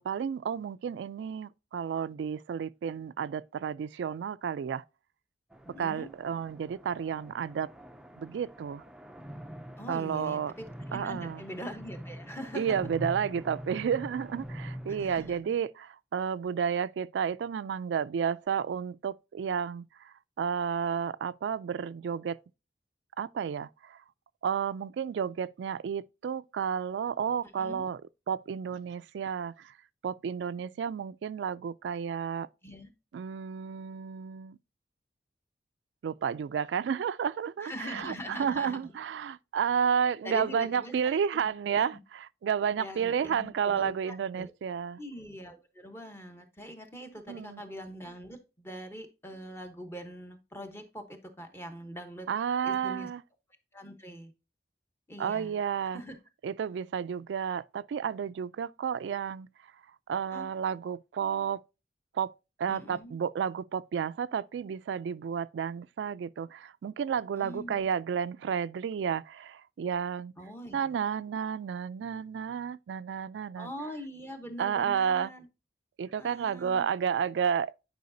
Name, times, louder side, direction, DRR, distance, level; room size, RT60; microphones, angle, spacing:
voice 1, 0.0-4.8 5.8-7.7 8.2-8.8 9.9-10.5 10.9-11.4 12.5-22.4 23.2-24.0 24.4-28.0 28.3-29.7 30.0-32.5 33.1-34.6 36.0-45.0 47.3-47.6 52.3-53.2 55.2-56.0 56.4-59.5 60.1-61.6 62.1-62.3 62.6-70.3 70.7-73.7 74.6-75.3 76.0-77.7, right 7 dB, 90° right, 0.3 m, -31 dB
sound 1, 5.5-15.4, equal, 5° right, 0.4 m, -44 dB
voice 2, 5.6-6.1 9.8-12.9 15.0-15.5 27.6-27.8 32.6-32.9 37.6-38.9 40.2-42.0 42.8-44.5 45.0-52.3 52.6-53.1 53.7-54.3 55.1-55.6 55.9-56.2 60.3-60.5 62.7-63.2 67.3-67.8 70.4-70.9 73.6-75.5 76.2-76.9, equal, 15° left, 1.0 m, -43 dB
9.3 x 4.9 x 2.6 m
head